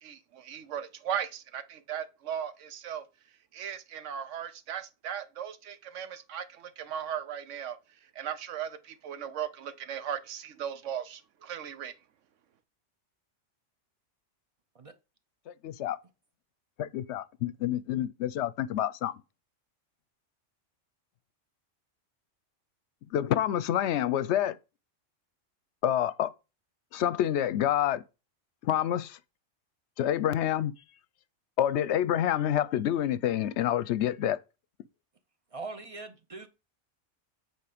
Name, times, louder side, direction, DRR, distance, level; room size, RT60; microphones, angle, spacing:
voice 1, 0.0-3.0 3.5-7.8 8.2-11.9, right 9 dB, 80° right, 1.1 m, -37 dB
voice 2, 15.5-16.0 16.8-19.2 23.1-24.6 25.8-26.3 26.9-28.0 28.6-29.2 30.0-30.8 31.6-34.4, left 11 dB, 70° left, 0.8 m, -28 dB
voice 3, 35.5-36.5, right 3 dB, 40° right, 0.6 m, -41 dB
8.4 x 4.0 x 5.0 m
omnidirectional pair, 1.2 m